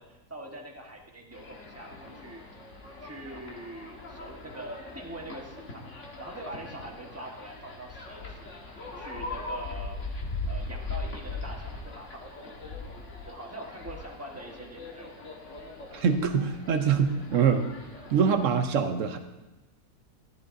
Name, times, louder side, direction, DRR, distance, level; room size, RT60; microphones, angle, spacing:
voice 1, 0.0-2.4 3.0-8.5 8.9-10.0 10.4-12.5 13.2-15.2, right 1 dB, 10° right, 0 dB, 0.9 m, -43 dB
sound 1, 1.3-18.5, left 2 dB, 45° left, 1.6 m, -40 dB
voice 2, 15.9-17.7 18.1-19.2, right 6 dB, 65° right, 7 dB, 0.8 m, -24 dB
14.5 x 10.5 x 2.6 m, 1.1 s
omnidirectional pair, 2.0 m